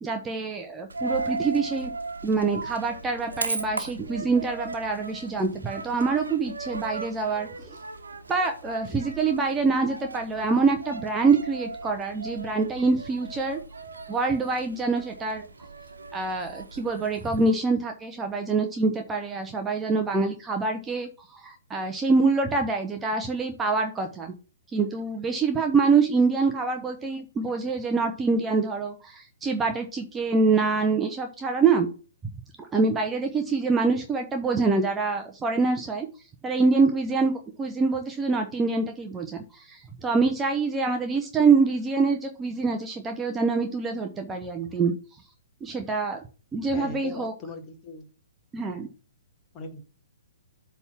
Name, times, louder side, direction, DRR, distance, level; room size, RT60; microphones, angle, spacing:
voice 1, 0.0-1.9 2.2-7.5 8.3-13.6 14.1-15.4 16.1-24.3 24.7-31.9 32.7-36.1 36.4-37.3 37.6-44.9 45.6-46.2 46.5-47.3 48.5-48.9, right 4 dB, 15° right, 0.8 m, -25 dB
Coin (dropping), 0.9-17.5, right 3 dB, 75° right, 1.0 m, -37 dB
voice 2, 46.7-48.1 48.7-48.9 49.5-49.8, left 3 dB, 25° left, 1.7 m, -39 dB
8.0 x 3.6 x 5.9 m
figure-of-eight pair, 120°, 0 cm